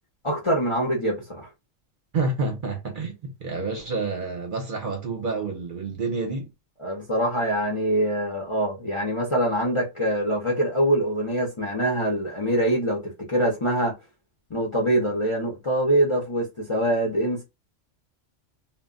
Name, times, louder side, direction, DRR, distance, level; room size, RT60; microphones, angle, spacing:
voice 1, 0.2-1.5 6.8-13.9 14.5-17.4, right 1 dB, 30° left, 0.6 m, -24 dB
voice 2, 2.1-6.5, right 3 dB, 50° right, 0.8 m, -29 dB
2.2 x 2.2 x 3.6 m
omnidirectional pair, 1.3 m